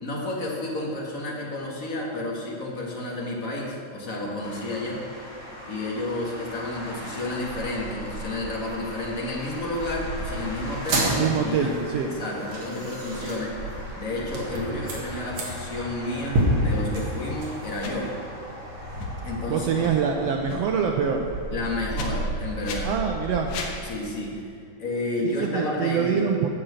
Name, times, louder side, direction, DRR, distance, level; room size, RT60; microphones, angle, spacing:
voice 1, 0.0-5.0 5.7-13.5 14.0-18.1 19.2-19.8 21.5-22.9 23.8-24.3 24.8-26.3, left 2 dB, 40° left, -3 dB, 1.4 m, -31 dB
sound 1, 4.4-23.8, right 1 dB, 15° left, 0.9 m, -38 dB
sound 2, 10.7-20.3, equal, 60° right, 2.8 m, -30 dB
voice 2, 11.0-12.1 19.5-21.3 22.8-23.5 25.2-26.5, right 7 dB, 80° right, 2 dB, 1.5 m, -25 dB
sound 3, 17.8-17.9 18.9-19.1 19.7-20.0 20.4-20.6 21.9-22.1 22.6-22.8 23.4-23.8, left 5 dB, 80° left, 2.4 m, -35 dB
9.7 x 6.5 x 8.0 m, 2.4 s
omnidirectional pair, 3.5 m